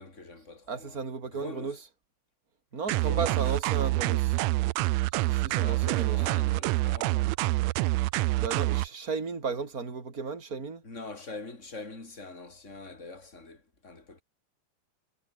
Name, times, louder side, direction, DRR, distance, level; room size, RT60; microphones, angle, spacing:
voice 1, 0.0-1.8 2.9-3.5 5.6-7.3 10.8-14.2, left 3 dB, 20° left, 5.8 m, -44 dB
voice 2, 0.7-1.8 2.7-4.4 5.2-6.2 8.4-10.8, right 5 dB, 25° right, 3.8 m, -34 dB
sound 1, 2.9-8.9, right 19 dB, 80° right, 1.6 m, -26 dB
omnidirectional pair, 3.6 m